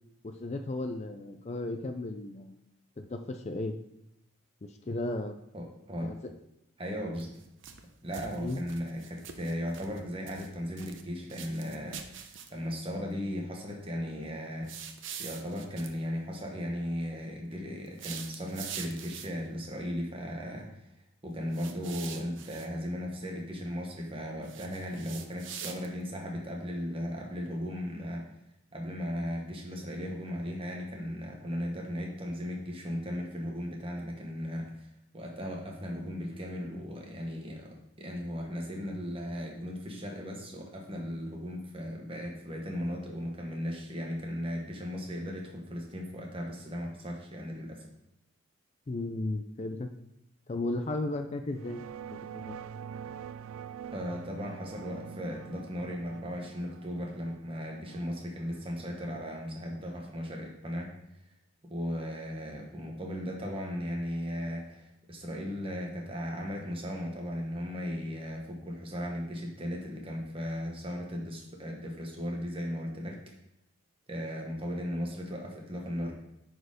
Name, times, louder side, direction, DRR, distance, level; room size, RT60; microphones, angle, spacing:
voice 1, 0.2-2.6 3.0-3.8 4.6-5.4 6.0-6.3 8.4-8.6 48.9-49.9 50.5-51.8 52.1-52.6, left 2 dB, 30° left, 6 dB, 0.4 m, -35 dB
voice 2, 5.5-6.1 6.8-7.3 8.0-14.7 15.2-20.8 21.2-28.3 28.7-34.7 35.1-47.8 53.9-60.9 61.6-73.2 74.1-76.1, equal, 25° right, 0 dB, 1.3 m, -36 dB
sound 1, 7.1-7.8 8.1-10.0 10.3-11.0 11.3-12.7 14.6-15.9 17.9-19.5 21.5-22.7 24.4-26.1, right 8 dB, 60° right, 0.8 m, -44 dB
sound 2, 51.5-60.2, right 7 dB, 75° right, 0.3 m, -46 dB
8.8 x 4.5 x 5.1 m, 0.82 s
head